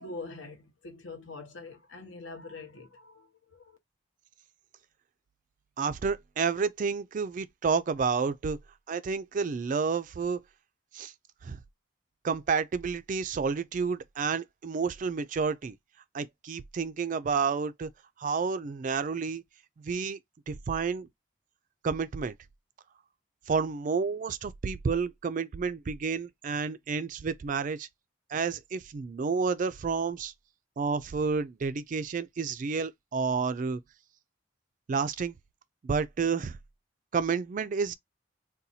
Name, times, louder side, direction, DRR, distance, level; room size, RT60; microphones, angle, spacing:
voice 1, 0.0-3.8, left 3 dB, 70° left, 1.0 m, -44 dB
voice 2, 5.8-8.6 8.9-10.4 10.9-11.1 11.4-11.6 12.2-15.7 16.1-17.9 18.2-19.4 19.8-20.2 20.5-21.1 21.8-22.3 23.5-27.9 28.3-30.3 30.8-33.8 34.9-35.3 35.8-36.6 37.1-37.9, right 5 dB, 40° right, 0.3 m, -30 dB
4.1 x 2.2 x 2.7 m
head